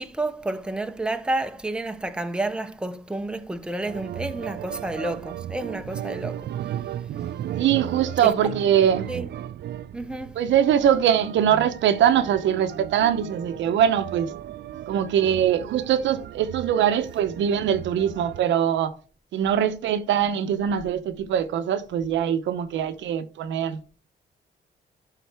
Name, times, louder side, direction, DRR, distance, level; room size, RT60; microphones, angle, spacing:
voice 1, 0.0-6.9 8.2-8.4 9.1-9.3 9.9-10.4, right 2 dB, 5° right, 0.6 m, -30 dB
sound 1, 3.9-18.4, right 11 dB, 65° right, 0.4 m, -36 dB
voice 2, 7.6-9.1 10.4-14.3 14.9-18.9 19.3-23.8, right 9 dB, 90° right, 0.8 m, -22 dB
11.5 x 4.2 x 3.4 m
cardioid pair, 95°, 19 cm